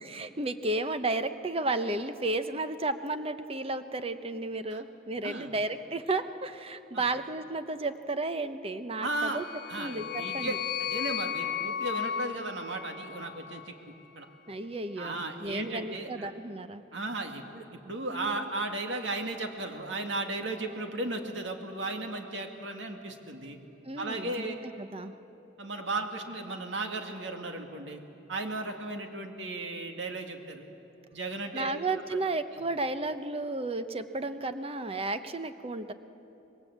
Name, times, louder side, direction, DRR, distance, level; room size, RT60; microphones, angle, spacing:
voice 1, 0.0-9.4 9.8-10.6 14.5-16.8 18.1-18.5 23.8-25.1 31.5-35.9, right 2 dB, 30° right, 10 dB, 0.9 m, -33 dB
voice 2, 9.0-14.3 15.0-16.3 16.9-23.6 24.0-24.6 25.6-28.0 28.3-30.7 31.1-31.8, right 2 dB, 70° right, 4 dB, 2.2 m, -35 dB
sound 1, 9.3-13.7, left 9 dB, 45° left, 0.9 m, -35 dB
25.5 x 21.0 x 8.1 m, 3.0 s
head